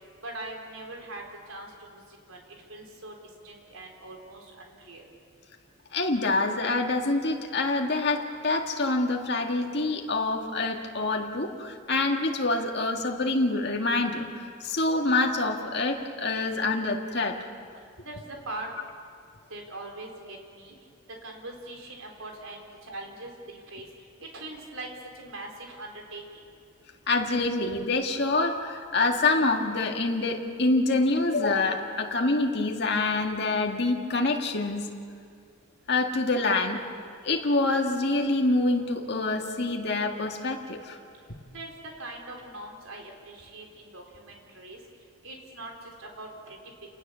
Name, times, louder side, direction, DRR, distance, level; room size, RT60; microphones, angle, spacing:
voice 1, 0.2-2.0 2.3-2.4 2.7-3.1 3.4-5.1 18.0-18.7 19.5-20.7 21.2-23.9 24.2-24.9 25.2-26.2 41.5-41.7 42.0-44.8 45.2-45.7 46.0-46.6, right 2 dB, 90° right, 1 dB, 4.0 m, -41 dB
voice 2, 5.9-17.4 27.1-34.9 35.9-36.8 37.2-41.0, left 2 dB, 55° left, 2 dB, 2.0 m, -26 dB
29.0 x 19.5 x 7.0 m, 2.2 s
head